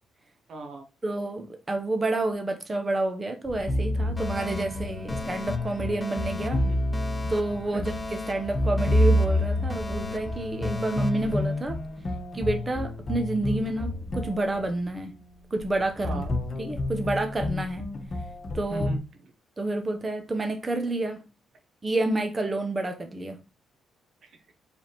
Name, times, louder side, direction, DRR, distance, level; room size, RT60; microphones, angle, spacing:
voice 1, 0.5-0.9 6.6-6.8 7.7-7.8 16.0-16.3 18.7-19.3 24.2-24.5, right 3 dB, 60° right, 0.8 m, -38 dB
voice 2, 1.0-6.6 7.3-11.8 12.3-15.1 15.5-16.2 16.6-17.8 18.5-18.9 19.6-21.2 21.8-23.4, right 2 dB, 25° right, 0.7 m, -29 dB
sound 1, 3.4-19.0, left 1 dB, 45° left, 1.0 m, -29 dB
Alarm, 4.2-12.2, left 3 dB, 20° left, 0.7 m, -38 dB
4.5 x 3.4 x 2.9 m
cardioid pair, 90°, 0 cm